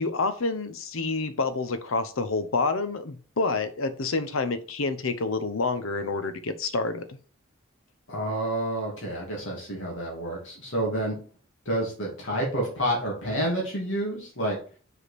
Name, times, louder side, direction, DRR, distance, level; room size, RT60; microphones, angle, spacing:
voice 1, 0.0-7.2, left 3 dB, 85° left, 11 dB, 0.8 m, -28 dB
voice 2, 8.1-11.1 11.7-14.6, right 1 dB, 65° left, -2 dB, 2.4 m, -29 dB
5.0 x 4.9 x 4.2 m, 0.40 s
head